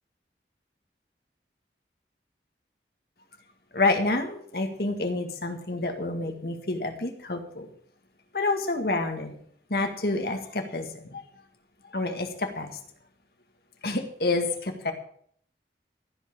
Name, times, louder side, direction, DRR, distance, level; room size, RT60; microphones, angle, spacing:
voice 1, 3.7-7.7 8.3-9.3 9.7-11.2 11.9-12.7 13.8-14.9, left 2 dB, 60° left, 5 dB, 1.9 m, -28 dB
15.0 x 5.7 x 8.5 m, 0.62 s
head